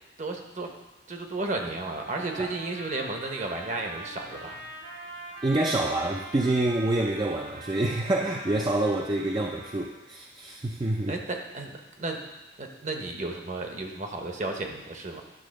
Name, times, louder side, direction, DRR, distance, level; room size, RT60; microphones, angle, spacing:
voice 1, 0.2-0.7 1.1-4.6 11.1-12.2 12.6-15.2, right 2 dB, 40° right, 3 dB, 0.9 m, -33 dB
Trumpet, 1.6-9.9, right 2 dB, 60° right, 1.7 m, -43 dB
voice 2, 5.4-11.2, right 2 dB, 25° right, 0 dB, 0.4 m, -27 dB
10.0 x 3.8 x 6.3 m, 1.1 s
head